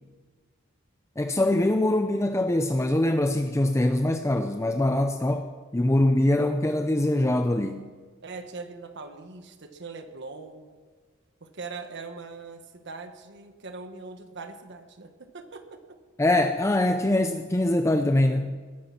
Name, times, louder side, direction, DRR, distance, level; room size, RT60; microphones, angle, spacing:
voice 1, 1.2-7.9 16.2-18.6, left 1 dB, 15° left, 7 dB, 0.6 m, -23 dB
voice 2, 8.2-10.7 11.4-15.8, right 4 dB, 60° right, 7 dB, 1.3 m, -41 dB
20.5 x 9.8 x 5.9 m, 1.5 s
head